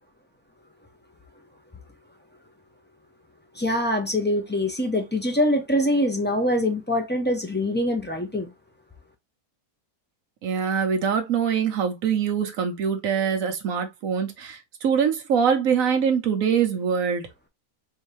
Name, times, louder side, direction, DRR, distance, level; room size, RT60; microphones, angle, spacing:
voice 1, 3.6-8.5, left 1 dB, 15° left, 0.3 m, -24 dB
voice 2, 10.4-17.3, right 7 dB, 65° right, 1.3 m, -24 dB
4.4 x 2.8 x 3.1 m
omnidirectional pair, 1.6 m